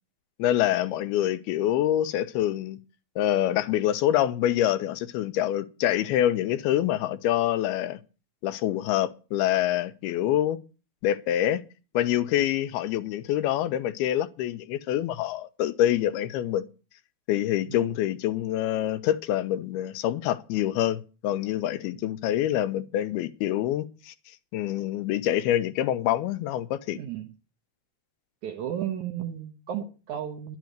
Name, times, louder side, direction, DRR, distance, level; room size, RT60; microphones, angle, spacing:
voice 1, 0.4-2.8 3.2-8.0 8.4-10.6 11.0-11.6 11.9-16.7 17.3-24.1 24.5-27.0, left 12 dB, 85° left, 2.8 m, -26 dB
voice 2, 26.9-27.3 28.4-30.6, right 10 dB, 65° right, 2.0 m, -34 dB
12.0 x 10.0 x 6.3 m
omnidirectional pair, 4.4 m